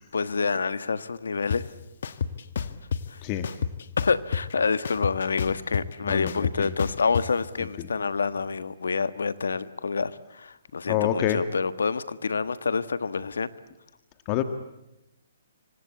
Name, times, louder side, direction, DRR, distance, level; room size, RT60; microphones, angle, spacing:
voice 1, 0.1-1.6 3.1-3.2 4.0-13.5, left 5 dB, 85° left, 14 dB, 1.4 m, -27 dB
sound 1, 1.5-1.6 2.0-3.0 3.4-4.5 4.8-7.2, left 6 dB, 65° left, 1.6 m, -29 dB
voice 2, 6.0-6.7 10.9-11.4 14.2-14.4, left 12 dB, 30° left, 9 dB, 1.6 m, -27 dB
27.0 x 25.0 x 8.5 m, 0.91 s
hypercardioid pair, 145°, 0 cm